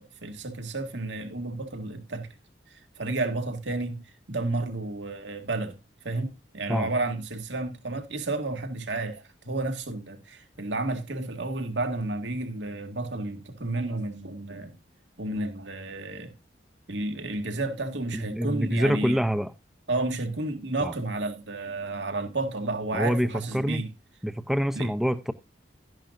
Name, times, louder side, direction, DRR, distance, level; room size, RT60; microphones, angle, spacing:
voice 1, 0.0-2.3 2.7-5.8 6.0-14.8 15.2-16.3 16.9-19.2 19.9-23.9 24.7-24.9, right 2 dB, 80° right, 1.9 m, -31 dB
voice 2, 18.1-19.5 20.8-20.9 22.9-23.8 24.2-25.3, equal, ahead, 0.5 m, -26 dB
12.5 x 10.5 x 2.4 m
head